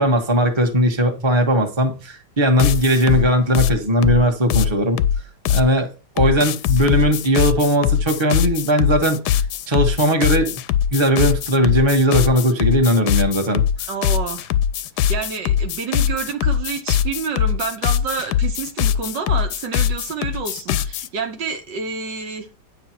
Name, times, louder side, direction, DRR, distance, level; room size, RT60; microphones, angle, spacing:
voice 1, 0.0-5.0 5.5-9.4 9.7-10.6 10.9-13.6, equal, 15° right, 1.2 m, -18 dB
sound 1, 2.6-5.7 6.2-21.1, left 9 dB, 75° left, 1.1 m, -21 dB
voice 2, 13.9-14.5 15.1-22.5, right 5 dB, 75° right, 1.9 m, -28 dB
9.5 x 5.6 x 4.5 m
omnidirectional pair, 2.0 m